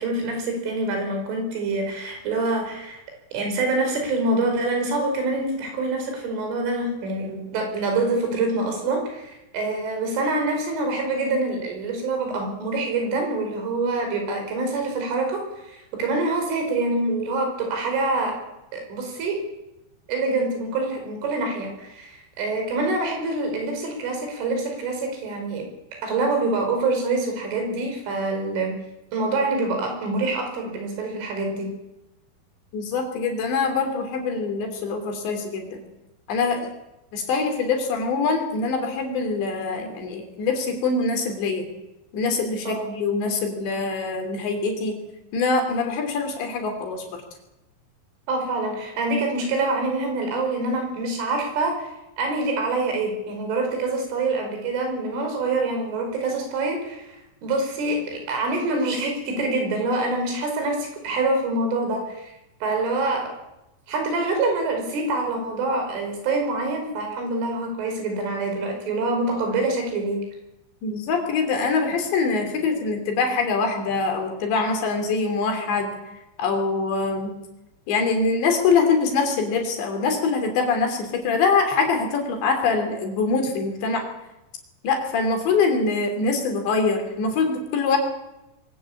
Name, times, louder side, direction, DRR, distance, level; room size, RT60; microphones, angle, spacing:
voice 1, 0.0-3.0 3.3-18.4 18.7-19.4 20.1-25.7 26.0-28.8 29.1-31.7 42.7-42.9 48.3-51.9 52.2-57.2 57.4-62.3 62.6-63.4 63.9-70.2, right 2 dB, 85° right, 3 dB, 7.5 m, -25 dB
voice 2, 32.7-35.8 36.3-36.7 37.1-41.7 42.1-45.0 45.3-47.0 70.8-75.9 76.4-77.3 77.9-84.1 84.8-88.0, left 4 dB, 65° left, 4 dB, 5.4 m, -24 dB
23.5 x 15.5 x 8.7 m, 0.94 s
omnidirectional pair, 5.5 m